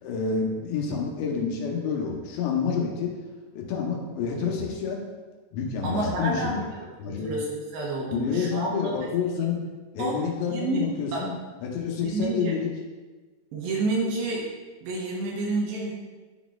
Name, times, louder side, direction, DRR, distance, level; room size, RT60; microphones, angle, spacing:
voice 1, 0.0-3.1 3.5-5.0 5.5-6.5 7.0-7.3 8.1-9.6 9.9-11.3 11.6-12.7, left 6 dB, 85° left, 0 dB, 3.2 m, -28 dB
voice 2, 5.8-9.0 10.0-10.2 10.5-10.8 11.1-11.3 12.0-12.6 13.5-14.5 14.8-15.9, right 2 dB, 75° right, -2 dB, 2.4 m, -29 dB
11.0 x 4.1 x 2.4 m, 1.3 s
omnidirectional pair, 4.9 m